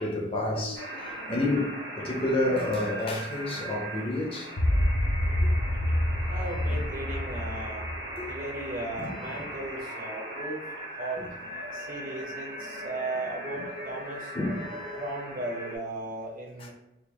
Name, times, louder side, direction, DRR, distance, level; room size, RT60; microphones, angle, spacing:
voice 1, 0.0-4.5 5.8-5.9 6.7-6.8 8.2-8.3 9.0-9.5 11.6-11.9 14.3-15.0 16.6-16.7, left 2 dB, 30° left, 0.5 m, -30 dB
sound 1, 0.7-15.8, right 1 dB, 65° right, 1.1 m, -39 dB
sound 2, 4.6-8.9, left 1 dB, 75° left, 0.6 m, -27 dB
voice 2, 6.3-7.8 8.3-10.6 11.0-11.3 11.7-14.3 15.0-16.7, right 2 dB, 45° right, 0.8 m, -36 dB
4.4 x 2.4 x 2.7 m
head